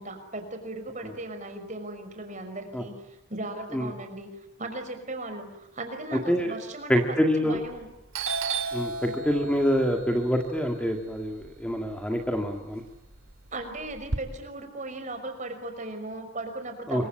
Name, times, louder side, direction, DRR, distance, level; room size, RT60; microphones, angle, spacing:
voice 1, 0.0-7.9 13.5-17.1, right 2 dB, 35° right, 7 dB, 5.4 m, -37 dB
voice 2, 6.1-6.5 6.9-7.6 8.7-12.8 16.9-17.1, equal, 5° left, 3 dB, 1.9 m, -26 dB
Doorbell, 7.6-7.8 8.1-12.3 12.6-14.2, right 4 dB, 75° right, 2.3 m, -34 dB
26.5 x 24.0 x 8.9 m, 0.84 s
head